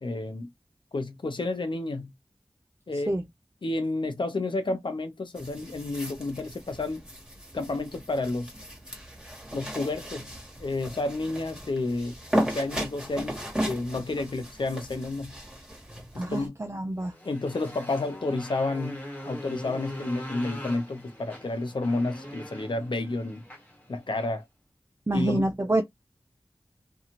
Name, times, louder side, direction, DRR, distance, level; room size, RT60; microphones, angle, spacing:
voice 1, 0.0-0.5 0.9-2.1 2.9-3.1 3.6-7.0 7.5-8.5 9.5-10.3 10.6-15.3 16.1-16.5 17.2-23.4 23.9-24.5 25.1-25.5, left 2 dB, 70° left, 0.7 m, -30 dB
sound 1, 5.3-16.5, equal, 10° right, 1.4 m, -36 dB
voice 2, 16.2-17.1 25.1-25.8, right 1 dB, 30° right, 0.4 m, -27 dB
Motorcycle, 17.0-24.4, equal, 15° left, 1.3 m, -42 dB
2.7 x 2.4 x 2.9 m
wide cardioid pair, 50°, 9 cm